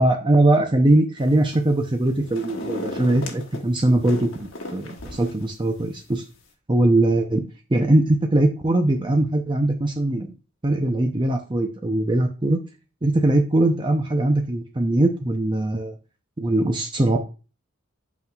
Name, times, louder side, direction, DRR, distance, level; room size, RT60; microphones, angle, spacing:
voice 1, 0.0-6.2 6.7-7.4 7.7-10.3 10.6-12.6 13.0-15.9 16.4-17.2, right 1 dB, 25° right, 3 dB, 0.6 m, -21 dB
sound 1, 1.2-1.7 2.1-3.6 4.0-5.4 5.8-5.9, left 2 dB, 75° left, 1.3 m, -35 dB
8.3 x 5.5 x 2.4 m, 0.32 s
head